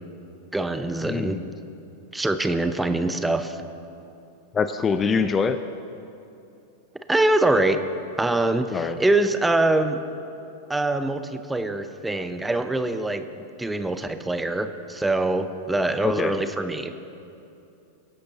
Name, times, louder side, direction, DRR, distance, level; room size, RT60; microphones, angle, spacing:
voice 1, 0.5-1.4 2.1-3.6 7.1-7.8 8.2-10.0 10.7-13.3 13.6-17.1, right 2 dB, 10° right, 9 dB, 0.8 m, -24 dB
voice 2, 1.0-1.4 4.5-5.6 8.7-9.0 16.0-16.3, left 5 dB, 20° left, 10 dB, 0.5 m, -24 dB
25.0 x 11.5 x 3.0 m, 2.7 s
figure-of-eight pair, 95°, 0 cm